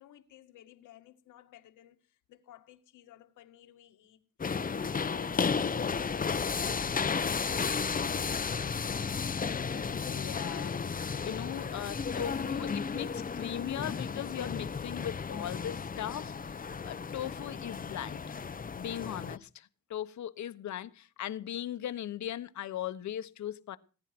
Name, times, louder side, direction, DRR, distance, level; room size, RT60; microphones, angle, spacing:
voice 1, 0.0-8.8 9.3-9.6 9.9-10.8 16.3-16.4, left 12 dB, 85° left, 2.2 m, -54 dB
sound 1, 4.4-19.4, left 5 dB, 30° left, 0.9 m, -33 dB
voice 2, 10.1-10.7 11.2-18.4 18.7-23.8, left 11 dB, 70° left, 1.4 m, -39 dB
19.0 x 10.0 x 6.1 m
cardioid pair, 90°, 30 cm